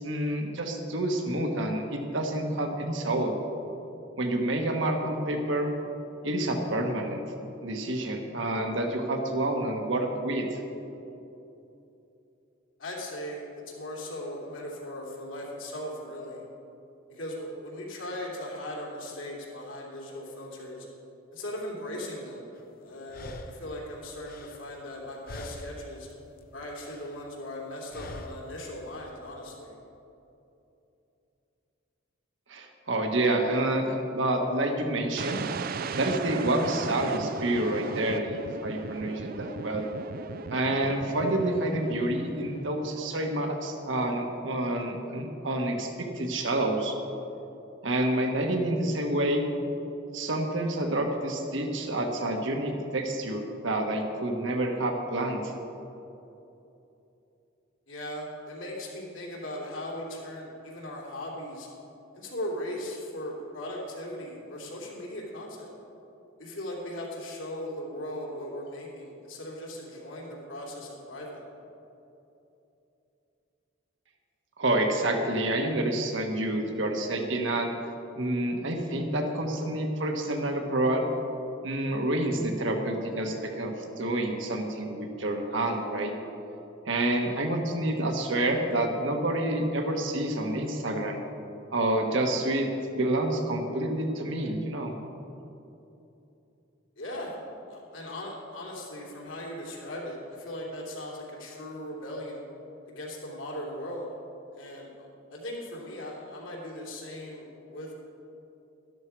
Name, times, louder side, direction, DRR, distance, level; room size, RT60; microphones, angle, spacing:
voice 1, 0.0-3.4 4.2-5.7 6.2-7.2 7.6-10.5 32.5-35.4 36.0-39.8 40.5-47.0 47.8-49.4 50.1-55.5 74.6-77.7 78.2-81.0 81.6-86.1 86.9-91.2 91.7-92.7 92.9-94.9, right 1 dB, 65° right, 3 dB, 1.4 m, -28 dB
voice 2, 12.8-16.4 17.1-20.9 21.3-22.5 22.8-26.1 26.5-29.8 57.9-61.7 62.1-65.7 66.4-71.5 97.0-97.3 97.7-102.4 102.9-104.1 104.5-105.1 105.3-107.9, left 1 dB, 75° left, -3 dB, 3.0 m, -38 dB
sound 1, 22.5-22.6 23.1-25.0 25.3-26.0 26.3-27.2 27.9-28.6, left 2 dB, 50° left, 0.8 m, -44 dB
sound 2, 35.2-43.0, right 5 dB, 45° right, 0.4 m, -37 dB
12.5 x 12.0 x 4.7 m, 2.9 s
head